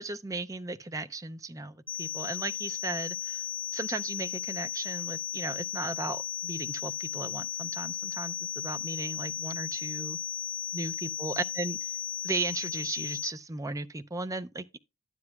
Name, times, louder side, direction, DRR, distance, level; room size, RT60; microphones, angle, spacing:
voice 1, 0.0-3.5 3.7-10.2 10.7-11.9 12.2-14.8, right 3 dB, 15° right, 0.4 m, -36 dB
sound 1, 1.9-13.3, left 10 dB, 10° left, 1.1 m, -35 dB
12.0 x 9.7 x 2.3 m
head